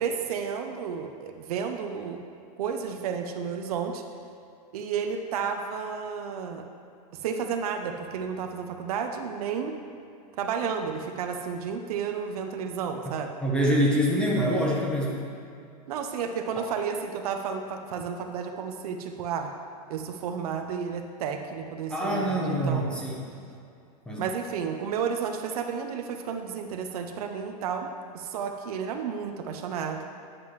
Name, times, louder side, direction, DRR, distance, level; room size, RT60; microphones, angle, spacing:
voice 1, 0.0-2.2 2.6-4.0 4.7-6.6 7.2-9.7 10.4-13.3 15.9-19.5 19.9-23.1 24.2-30.0, right 6 dB, 70° right, 5 dB, 0.7 m, -32 dB
voice 2, 13.4-15.2 16.6-16.7 21.9-23.3 24.1-24.2, equal, 5° left, -3 dB, 1.2 m, -25 dB
9.5 x 7.6 x 3.1 m, 2.5 s
supercardioid pair, 140°, 20 cm